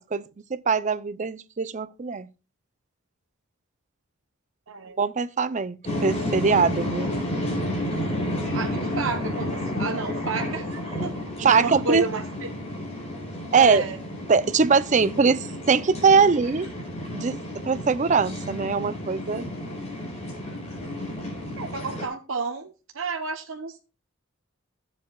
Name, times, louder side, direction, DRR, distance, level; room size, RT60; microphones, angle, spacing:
voice 1, 0.1-2.3 5.0-7.1 11.4-12.1 13.5-13.8 14.3-16.7 17.1-17.4 17.6-19.5, right 5 dB, 35° right, 0.5 m, -22 dB
sound 1, 5.8-22.1, left 1 dB, 35° left, 4.4 m, -31 dB
voice 2, 8.5-11.1 11.4-12.5 13.6-14.0 21.6-23.8, right 4 dB, 75° right, 0.9 m, -31 dB
15.0 x 7.6 x 2.3 m
head